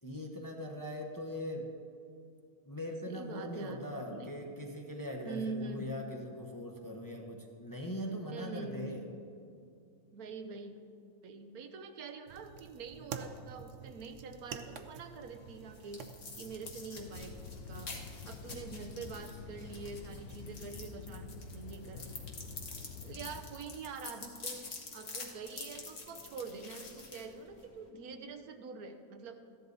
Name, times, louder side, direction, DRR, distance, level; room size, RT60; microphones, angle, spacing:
voice 1, 0.0-1.7 2.6-9.1, equal, 15° left, 1 dB, 0.8 m, -41 dB
voice 2, 3.1-4.3 5.2-6.0 8.3-9.0 10.1-10.8 11.2-16.0 16.3-17.3 17.6-17.9 18.2-22.1 23.0-29.4, right 4 dB, 80° right, 7 dB, 1.3 m, -45 dB
sound 1, 12.3-17.5, right 6 dB, 65° right, 1.0 m, -48 dB
sound 2, 15.2-27.9, left 3 dB, 55° left, 1.7 m, -48 dB
sound 3, 17.0-23.4, left 4 dB, 90° left, 1.3 m, -48 dB
14.5 x 11.0 x 4.0 m, 2.5 s
omnidirectional pair, 1.5 m